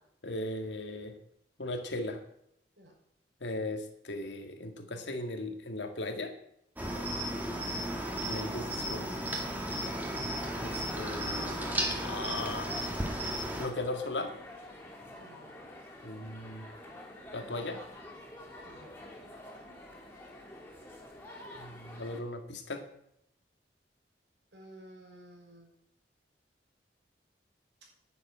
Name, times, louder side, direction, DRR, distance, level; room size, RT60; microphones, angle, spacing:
voice 1, 0.2-1.2 1.6-2.2 3.4-6.3 8.3-9.1 10.6-12.7 13.6-14.3 16.0-16.7 17.3-17.8 21.6-22.8, left 2 dB, 85° left, 5 dB, 2.0 m, -37 dB
Cricket, 6.8-13.7, right 1 dB, 10° right, 2.0 m, -34 dB
voice 2, 6.9-7.4 9.7-10.0 15.2-15.6 18.6-18.9 24.5-25.7, right 1 dB, 75° right, -1 dB, 5.9 m, -53 dB
sound 1, 9.4-22.2, left 1 dB, 10° left, 2.9 m, -48 dB
10.0 x 7.4 x 8.8 m, 0.75 s
head